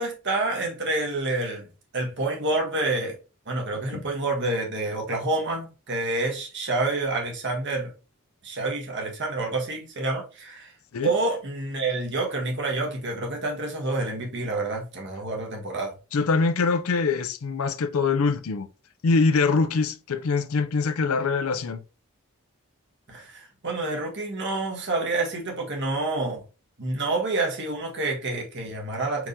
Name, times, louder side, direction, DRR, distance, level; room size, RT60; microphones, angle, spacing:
voice 1, 0.0-1.7 1.9-3.2 3.5-7.9 8.4-10.7 11.0-15.9 23.1-26.4 26.8-29.3, right 2 dB, 55° right, 1.5 m, -28 dB
voice 2, 16.1-18.7 19.0-21.8, left 4 dB, 80° left, 0.5 m, -24 dB
4.6 x 3.6 x 2.6 m
head